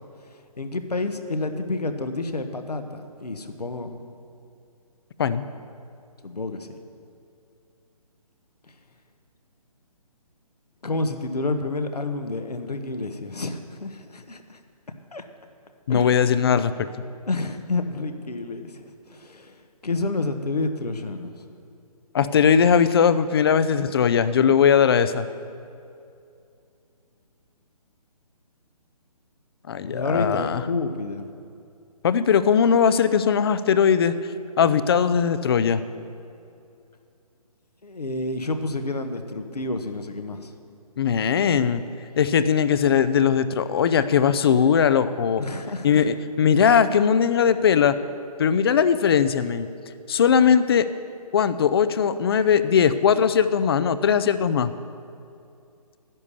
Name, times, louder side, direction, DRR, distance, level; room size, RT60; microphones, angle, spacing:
voice 1, 0.6-4.0 6.2-6.7 10.8-14.6 15.1-15.2 15.9-16.2 17.3-21.5 29.8-31.3 37.8-40.5 45.4-46.0, left 2 dB, 80° left, 7 dB, 1.3 m, -29 dB
voice 2, 15.9-16.7 22.1-25.3 29.7-30.6 32.0-34.1 34.6-35.8 41.0-41.8 42.2-45.4 45.8-48.0 48.4-49.7 50.1-50.9 51.3-54.7, left 7 dB, 40° left, 13 dB, 0.5 m, -19 dB
11.0 x 10.5 x 6.9 m, 2.5 s
figure-of-eight pair, 140°, 20 cm